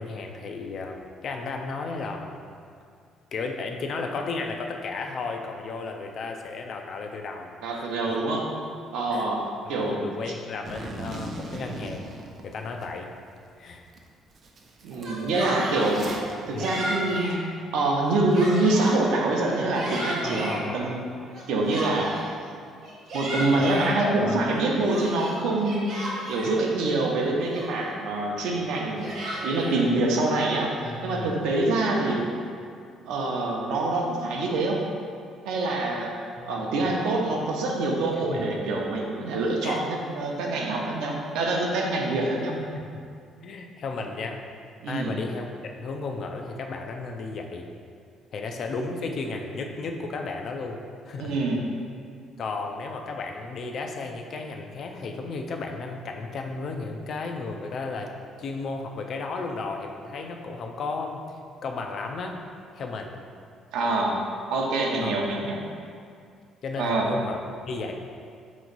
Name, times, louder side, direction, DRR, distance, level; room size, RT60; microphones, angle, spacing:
voice 1, 0.0-2.4 3.3-7.5 7.8-8.1 9.1-9.3 9.7-12.1 12.4-13.1 13.6-13.8 16.5-16.7 20.2-20.8 23.6-24.4 30.8-31.4 36.4-36.9 38.3-38.5 39.6-39.8 42.7-42.9 43.4-44.4 44.9-45.5 45.8-47.7 48.3-50.8 51.1-51.4 52.4-58.1 58.4-61.2 61.6-62.4 62.7-63.1 65.0-65.1 66.6-67.4 67.7-67.9, left 3 dB, 45° left, 3 dB, 0.4 m, -34 dB
voice 2, 7.6-8.5 8.9-9.4 9.7-10.3 14.8-16.1 16.5-17.3 17.7-21.0 21.5-22.2 23.1-26.0 26.3-29.1 29.4-32.3 33.0-34.8 35.4-36.1 36.4-42.5 44.8-45.2 51.2-51.6 63.7-64.2 64.5-65.6 66.8-67.1, right 2 dB, 85° right, -1 dB, 0.7 m, -25 dB
Zipper (clothing), 10.6-12.9 13.4-13.5 13.9-14.0 14.3-16.3, right 2 dB, 35° right, 0.4 m, -38 dB
Yell, 14.9-15.9 16.6-17.4 17.9-19.0 19.5-20.6 21.3-22.3 22.8-23.9 24.5-26.5 27.1-27.2 27.5-28.0 28.7-29.8, right 1 dB, 50° right, 1.1 m, -34 dB
4.4 x 3.1 x 3.9 m, 2.3 s
cardioid pair, 160°, 0 cm